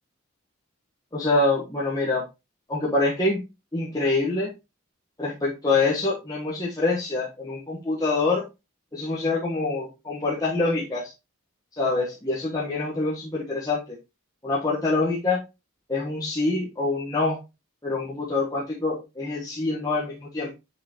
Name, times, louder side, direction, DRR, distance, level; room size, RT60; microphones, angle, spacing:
voice 1, 1.1-2.2 2.7-3.4 3.7-4.5 5.2-8.4 8.9-11.1 11.7-13.8 14.4-15.4 15.9-17.4 17.8-20.5, left 3 dB, 15° left, -6 dB, 1.2 m, -25 dB
6.3 x 5.7 x 2.9 m, 0.25 s
head